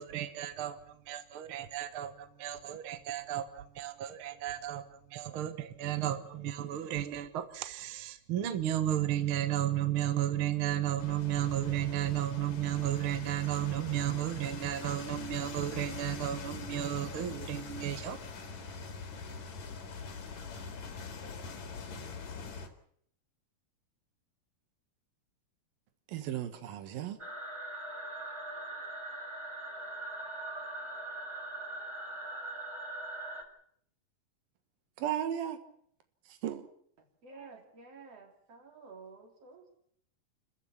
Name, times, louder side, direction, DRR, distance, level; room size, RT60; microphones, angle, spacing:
voice 1, 0.0-18.2, right 12 dB, 60° right, 1.4 m, -33 dB
sound 1, 11.0-22.7, left 4 dB, 55° left, 3.3 m, -43 dB
voice 2, 26.1-27.2 35.0-35.6 36.3-36.7, right 10 dB, 85° right, 3.2 m, -35 dB
sound 2, 27.2-33.4, right 2 dB, 10° right, 1.7 m, -41 dB
voice 3, 37.2-39.8, right 4 dB, 45° right, 4.3 m, -51 dB
29.5 x 14.5 x 7.2 m
omnidirectional pair, 4.0 m